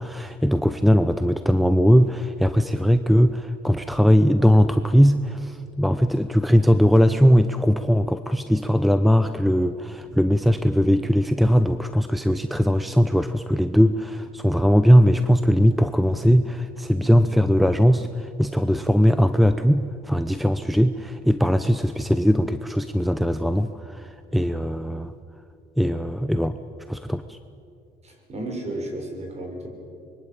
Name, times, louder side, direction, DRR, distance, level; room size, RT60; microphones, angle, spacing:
voice 1, 0.0-25.1 25.8-26.6 26.9-27.4, equal, ahead, 10 dB, 0.8 m, -20 dB
voice 2, 28.0-29.7, right 1 dB, 40° right, 3 dB, 6.8 m, -33 dB
25.0 x 23.0 x 9.0 m, 2.5 s
cardioid pair, 110°, 17 cm